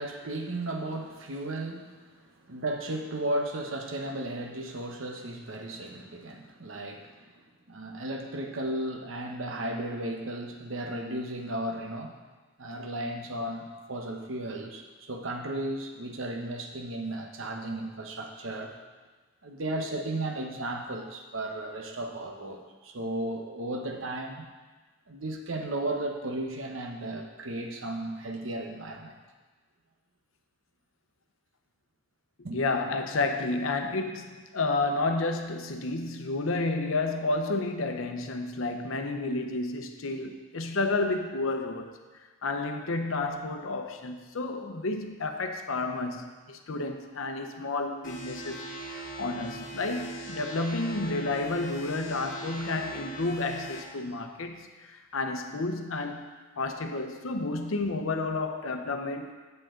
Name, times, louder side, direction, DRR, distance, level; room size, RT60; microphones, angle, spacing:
voice 1, 0.0-12.2 12.6-18.7 19.4-24.5 25.1-29.2 32.4-32.6, right 1 dB, 80° right, 3 dB, 1.0 m, -35 dB
voice 2, 32.5-41.9 42.4-48.6 49.2-56.3 56.6-59.3, left 3 dB, 85° left, 6 dB, 0.8 m, -31 dB
sound 1, 48.0-53.8, right 2 dB, 40° left, 1.6 m, -40 dB
8.2 x 7.8 x 3.8 m, 1.3 s
head